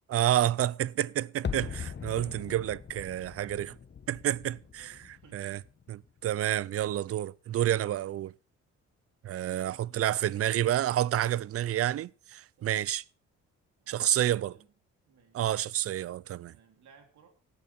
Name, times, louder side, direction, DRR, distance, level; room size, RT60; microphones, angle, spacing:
voice 1, 0.1-3.8 4.1-4.9 5.3-5.6 5.9-8.3 9.2-13.0 13.9-14.5 15.3-16.5, right 12 dB, 50° right, 0.5 m, -29 dB
sound 1, 1.4-6.4 6.6-6.7, left 7 dB, 35° left, 1.3 m, -41 dB
voice 2, 4.6-5.6 12.6-12.9 13.8-14.8 15.1-15.5 16.4-17.3, right 6 dB, 70° right, 3.5 m, -61 dB
16.5 x 8.7 x 4.4 m
cardioid pair, 90°, 30 cm